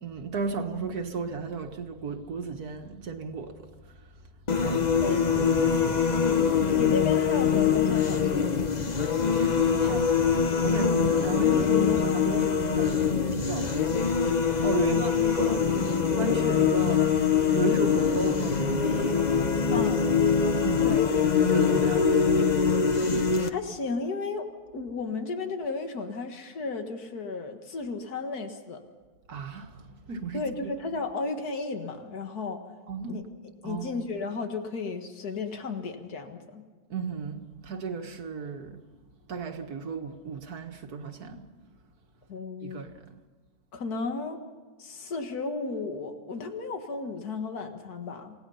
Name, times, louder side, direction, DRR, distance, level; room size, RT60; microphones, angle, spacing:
voice 1, 0.0-4.0 4.5-4.9 5.2-6.1 6.7-7.0 9.0-20.9 21.4-23.5 29.3-31.0 32.9-33.3 33.6-34.1 36.9-38.8 39.3-41.4 42.6-43.0, right 4 dB, 80° right, 2.1 m, -35 dB
sound 1, 4.5-23.5, left 6 dB, 30° left, 1.0 m, -24 dB
voice 2, 4.9-5.6 6.7-8.8 14.9-15.1 19.7-20.0 20.9-21.0 23.4-24.5 24.7-28.8 30.3-32.6 33.1-33.2 33.6-36.6 42.3-42.8 43.7-44.4 44.8-48.3, left 4 dB, 80° left, 2.2 m, -34 dB
28.0 x 18.0 x 5.7 m
omnidirectional pair, 1.6 m